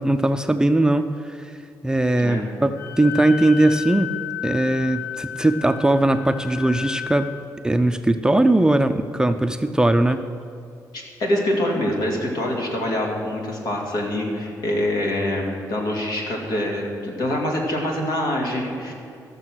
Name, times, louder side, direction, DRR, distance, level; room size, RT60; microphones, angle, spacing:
voice 1, 0.0-1.5 1.8-4.2 4.4-7.3 7.6-10.2, right 1 dB, 10° right, 8 dB, 0.5 m, -20 dB
voice 2, 2.2-2.5 10.9-18.9, left 1 dB, 75° left, 0 dB, 2.4 m, -25 dB
Wind instrument woodwind instrument, 2.7-7.4, left 11 dB, 40° left, 2.2 m, -33 dB
14.0 x 6.7 x 6.2 m, 2.5 s
cardioid pair, 90°, 7 cm